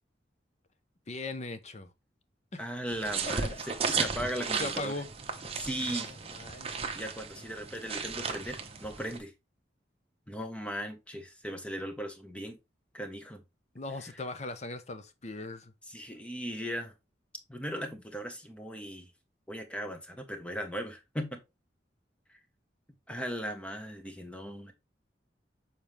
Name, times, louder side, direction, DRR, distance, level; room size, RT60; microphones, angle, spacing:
voice 1, 1.1-1.9 2.5-2.6 3.4-3.6 4.6-5.1 5.3-6.9 13.7-15.7, left 2 dB, 40° left, 0.9 m, -39 dB
voice 2, 2.6-4.9 5.6-6.1 6.9-9.3 10.3-12.6 12.9-13.4 15.9-16.9 17.5-19.1 19.5-21.4 23.1-24.7, equal, 5° left, 1.2 m, -38 dB
sound 1, 2.9-9.2, right 5 dB, 35° right, 1.0 m, -35 dB
7.2 x 4.4 x 3.3 m
head